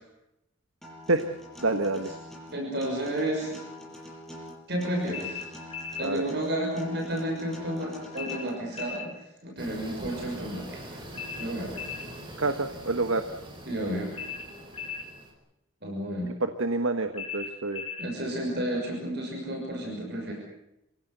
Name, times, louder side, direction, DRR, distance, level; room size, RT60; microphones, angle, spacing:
Acoustic guitar, 0.8-8.8, left 1 dB, ahead, 6.6 m, -45 dB
voice 1, 1.6-2.1 6.0-6.2 12.4-13.2 16.4-17.8, right 2 dB, 75° right, 8 dB, 1.4 m, -27 dB
voice 2, 2.5-3.6 4.7-5.4 6.0-9.2 9.4-11.0 11.4-11.8 13.7-14.1 15.8-16.3 18.0-20.3, right 1 dB, 50° right, 0 dB, 6.2 m, -31 dB
sound 1, 5.1-6.1 8.1-9.1 11.1-12.1 14.1-15.1 17.1-18.1, left 6 dB, 25° left, 4.7 m, -37 dB
sound 2, 9.6-15.3, right 1 dB, 25° right, 5.1 m, -43 dB
27.0 x 17.0 x 8.1 m, 0.86 s
head